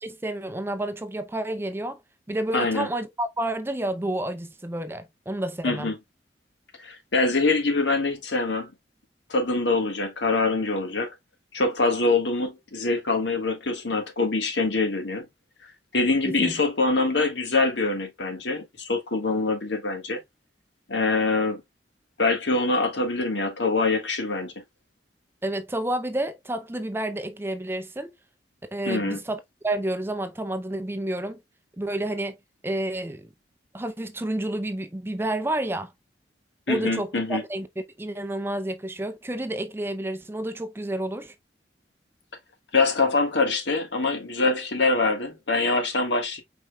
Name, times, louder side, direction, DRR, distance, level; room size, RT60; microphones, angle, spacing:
voice 1, 0.0-2.0 2.3-5.9 16.2-16.6 25.4-28.1 28.7-31.4 31.8-32.4 32.6-33.3 33.7-35.9 36.7-41.3, right 1 dB, 15° right, 0.5 m, -30 dB
voice 2, 2.5-2.9 5.6-5.9 6.8-8.7 9.3-11.1 11.5-15.3 15.9-20.2 20.9-21.6 22.2-24.5 28.8-29.2 36.7-37.4 42.7-46.4, left 3 dB, 80° left, 1.6 m, -24 dB
5.0 x 4.3 x 2.2 m
head